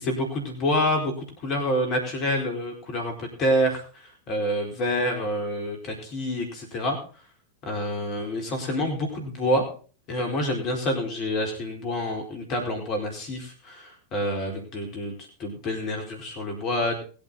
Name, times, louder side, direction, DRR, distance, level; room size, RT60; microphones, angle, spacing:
voice 1, 0.0-7.0 7.6-9.7 10.1-15.1 15.4-17.0, equal, 40° left, 3 dB, 4.3 m, -27 dB
20.5 x 8.7 x 4.0 m, 0.38 s
figure-of-eight pair, 90°, 0 cm